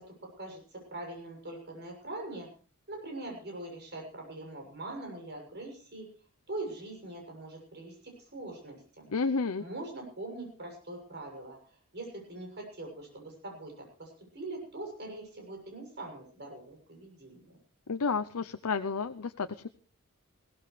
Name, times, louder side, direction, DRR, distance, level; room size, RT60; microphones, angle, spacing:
voice 1, 0.4-2.5 2.9-6.1 6.5-9.1 9.6-17.4, right 2 dB, 50° right, 1 dB, 7.3 m, -42 dB
voice 2, 9.1-9.6 17.9-19.7, left 4 dB, 75° left, 10 dB, 0.7 m, -31 dB
21.5 x 17.0 x 3.3 m, 0.41 s
head